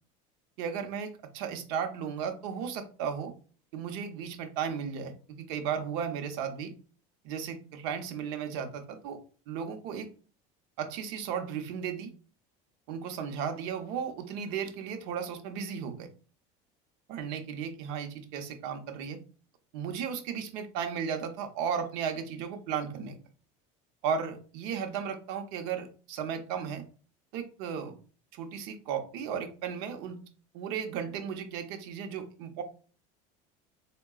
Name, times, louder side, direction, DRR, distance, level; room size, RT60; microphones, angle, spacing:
voice 1, 0.6-3.3 3.7-6.7 7.2-9.2 9.5-10.1 10.8-12.1 12.9-16.1 17.1-19.2 19.7-23.2 24.0-26.8 27.3-28.0 28.3-30.2 30.5-32.6, right 7 dB, 75° right, 6 dB, 0.7 m, -35 dB
4.5 x 2.2 x 2.3 m, 0.39 s
supercardioid pair, 120°, 18 cm